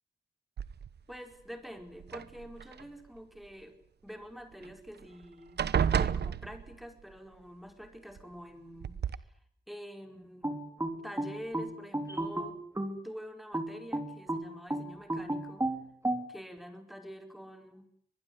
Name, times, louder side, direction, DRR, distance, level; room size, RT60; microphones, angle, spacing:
sound 1, 0.6-1.1 2.0-2.8 4.6-4.7 5.0-5.2 5.6-7.0 8.2-8.3 8.8-9.2, right 8 dB, 75° right, 1.1 m, -31 dB
voice 1, 1.1-3.8 4.0-9.4 9.7-10.5 11.0-12.6 13.0-15.7 16.3-17.9, equal, ahead, 6 dB, 4.7 m, -47 dB
sound 2, 10.4-13.0 13.5-16.3, right 1 dB, 15° right, 4.2 m, -33 dB
24.5 x 21.0 x 9.7 m, 0.65 s
cardioid pair, 85°, 17 cm